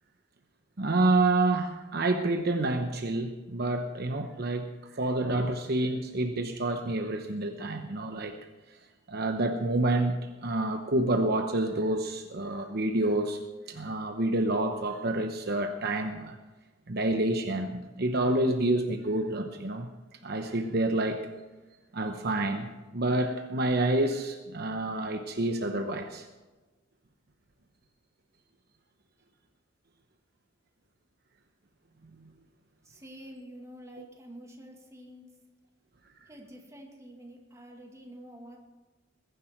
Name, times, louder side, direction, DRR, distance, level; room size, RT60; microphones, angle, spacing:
voice 1, 0.8-4.7 4.9-8.3 9.1-13.4 13.7-16.4 16.9-19.9 20.2-21.3 21.9-26.3 34.0-34.1, right 2 dB, 55° right, 5 dB, 1.0 m, -28 dB
voice 2, 32.8-35.3 36.2-38.6, equal, 15° right, 1 dB, 2.3 m, -48 dB
21.0 x 10.5 x 4.5 m, 1.2 s
head